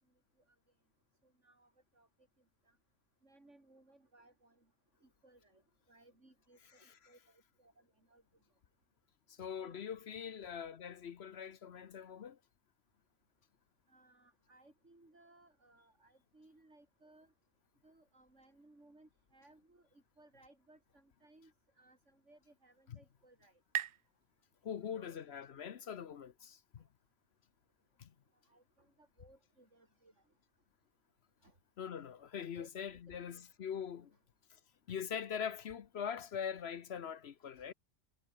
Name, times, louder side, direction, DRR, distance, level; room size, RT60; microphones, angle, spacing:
voice 1, 1.4-2.1 2.7-2.8 3.2-4.6 5.0-5.6 5.9-7.7 8.1-8.2 9.6-9.8 10.5-10.7 13.9-17.3 17.8-21.5 21.8-23.6 24.9-25.2 28.5-30.1 31.4-31.5 32.5-32.7 33.1-33.4 37.6-37.7, right 2 dB, 75° right, 6.3 m, -64 dB
voice 2, 9.4-12.4 24.6-26.8 28.0-28.1 31.8-34.1 34.9-37.7, left 7 dB, 60° left, 1.0 m, -42 dB
sound 1, 22.3-25.7, right 11 dB, 60° right, 0.6 m, -45 dB
omnidirectional pair, 1.2 m